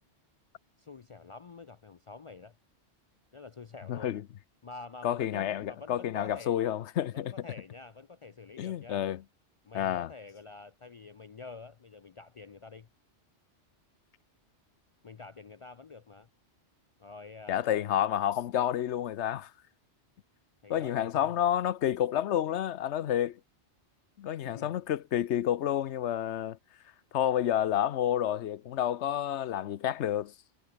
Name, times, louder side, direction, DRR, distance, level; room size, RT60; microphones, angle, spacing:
voice 1, 0.8-2.6 3.3-4.2 4.6-6.7 7.1-9.1 9.6-12.9 15.0-16.3 17.0-17.9 20.6-21.3 24.4-24.7, left 4 dB, 55° left, 0.3 m, -47 dB
voice 2, 3.9-4.2 5.0-7.3 8.6-9.2 9.7-10.1 17.5-19.5 20.7-23.4 24.2-26.6 27.1-30.3, left 11 dB, 80° left, 1.0 m, -29 dB
omnidirectional pair, 1.2 m